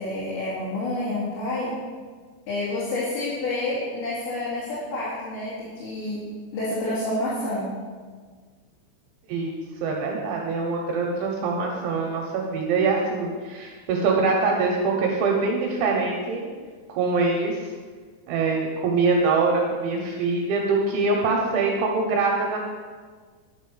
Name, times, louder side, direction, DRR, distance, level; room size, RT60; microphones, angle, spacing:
voice 1, 0.0-1.7 2.5-6.2 6.5-7.7, left 2 dB, 65° left, -9 dB, 4.4 m, -28 dB
voice 2, 9.3-16.4 16.9-17.7 18.3-22.6, right 4 dB, 75° right, 0 dB, 3.3 m, -24 dB
10.0 x 7.5 x 5.5 m, 1.5 s
omnidirectional pair, 5.8 m